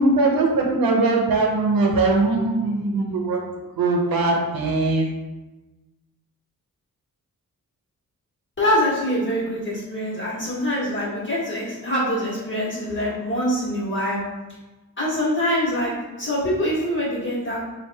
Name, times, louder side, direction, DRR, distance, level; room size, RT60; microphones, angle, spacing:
voice 1, 0.0-3.4 3.8-5.1, right 2 dB, 80° right, 1 dB, 0.8 m, -20 dB
voice 2, 8.6-14.2 15.0-15.9 16.2-17.6, equal, 35° left, -7 dB, 1.4 m, -24 dB
4.5 x 2.5 x 3.4 m, 1.1 s
wide cardioid pair, 155°, 34 cm